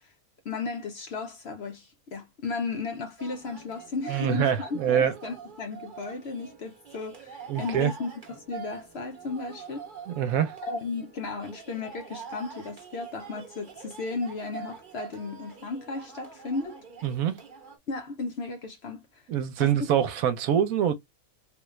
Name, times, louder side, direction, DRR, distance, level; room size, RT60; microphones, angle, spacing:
voice 1, 0.4-9.8 10.6-16.8 17.9-19.2 19.6-19.7, left 4 dB, 60° left, 0.8 m, -35 dB
sound 1, 3.2-17.8, right 6 dB, 40° right, 0.9 m, -45 dB
voice 2, 4.1-5.1 7.5-7.9 10.1-10.5 17.0-17.4 19.3-20.9, right 9 dB, 75° right, 1.1 m, -25 dB
3.4 x 2.4 x 3.1 m
omnidirectional pair, 1.5 m